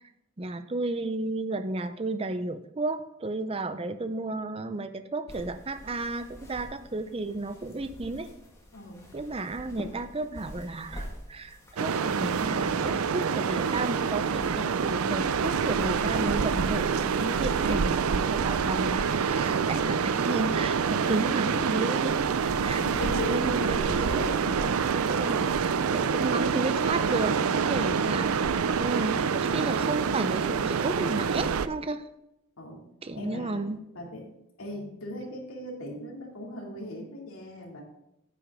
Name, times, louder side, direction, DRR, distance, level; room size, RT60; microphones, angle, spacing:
voice 1, 0.4-8.3 9.1-22.8 23.2-24.3 24.6-24.7 25.1-27.4 27.7-32.1 33.0-33.8, right 2 dB, 25° right, 11 dB, 0.6 m, -33 dB
sound 1, 5.3-24.3, equal, 15° left, 1.6 m, -48 dB
voice 2, 8.7-9.1 17.5-17.7 22.7-24.8 32.6-32.9 33.1-33.7 33.9-34.3 34.6-37.8, left 1 dB, 80° left, -2 dB, 2.5 m, -38 dB
sound 2, 11.8-31.7, right 6 dB, 85° right, 0.5 m, -26 dB
10.0 x 8.6 x 3.6 m, 0.84 s
head